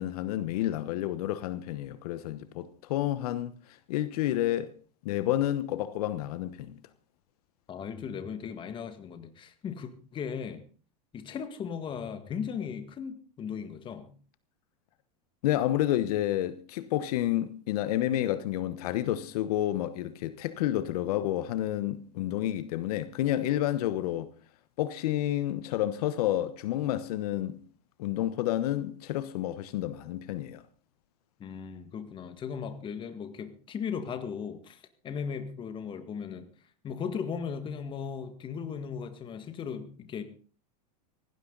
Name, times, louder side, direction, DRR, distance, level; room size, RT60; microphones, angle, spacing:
voice 1, 0.0-4.7 5.0-6.8 15.4-24.3 24.8-27.6 28.0-30.6, left 13 dB, 65° left, 1.2 m, -30 dB
voice 2, 7.7-10.6 11.1-14.1 31.4-36.5 36.8-40.2, left 7 dB, 25° left, 1.9 m, -37 dB
18.0 x 16.0 x 4.0 m
supercardioid pair, 150°, 21 cm